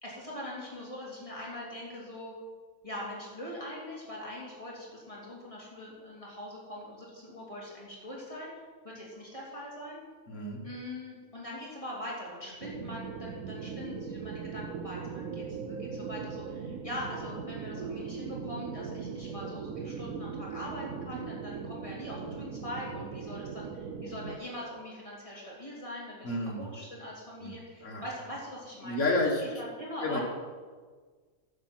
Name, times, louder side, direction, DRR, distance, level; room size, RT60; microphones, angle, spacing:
voice 1, 0.0-2.3 2.8-8.5 8.8-10.0 10.6-29.0 29.6-30.2, left 1 dB, 25° left, -6 dB, 3.0 m, -42 dB
voice 2, 10.3-10.6 26.2-26.6 27.4-27.5 27.8-28.0 28.8-29.5 30.0-30.2, left 2 dB, 60° left, 0 dB, 2.1 m, -30 dB
sound 1, 12.6-24.4, right 6 dB, 80° right, 1.1 m, -39 dB
11.0 x 7.9 x 6.1 m, 1.5 s
omnidirectional pair, 1.4 m